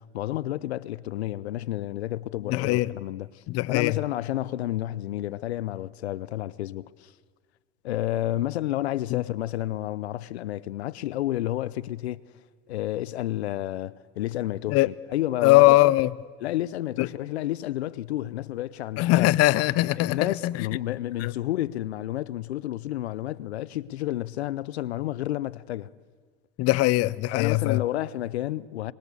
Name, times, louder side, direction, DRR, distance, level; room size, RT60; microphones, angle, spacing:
voice 1, 0.0-7.1 7.8-12.2 12.7-15.8 16.4-19.3 19.8-25.9 27.3-28.9, left 14 dB, 85° left, 0.8 m, -31 dB
voice 2, 2.5-2.9 3.5-4.0 9.1-9.2 14.7-14.9 15.4-16.1 17.0-17.1 19.0-20.5 21.2-21.3 26.6-27.8, left 19 dB, 50° left, 0.8 m, -21 dB
26.5 x 23.0 x 8.3 m
hypercardioid pair, 90°, 32 cm